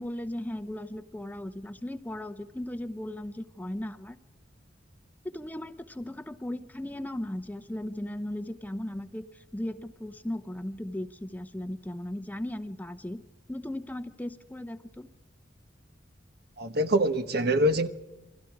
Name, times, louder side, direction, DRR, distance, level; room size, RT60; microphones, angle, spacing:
voice 1, 0.0-4.2 5.2-13.2 13.5-15.1, left 1 dB, 10° left, 0.8 m, -37 dB
voice 2, 16.6-17.9, right 1 dB, 55° right, 1.2 m, -24 dB
28.5 x 22.0 x 4.8 m
head